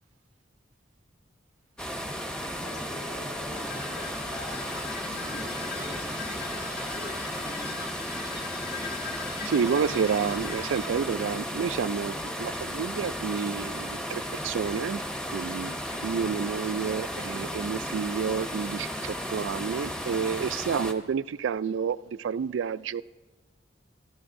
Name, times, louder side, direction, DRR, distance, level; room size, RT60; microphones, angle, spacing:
sound 1, 1.8-20.9, equal, 5° left, 0.8 m, -34 dB
voice 1, 2.4-8.0 15.8-16.1 20.6-20.8, left 1 dB, 75° left, 5.8 m, -45 dB
sound 2, 3.5-12.0, left 4 dB, 55° left, 1.4 m, -40 dB
voice 2, 9.4-15.0 15.3-23.0, right 6 dB, 75° right, 0.3 m, -30 dB
25.0 x 13.5 x 2.6 m
head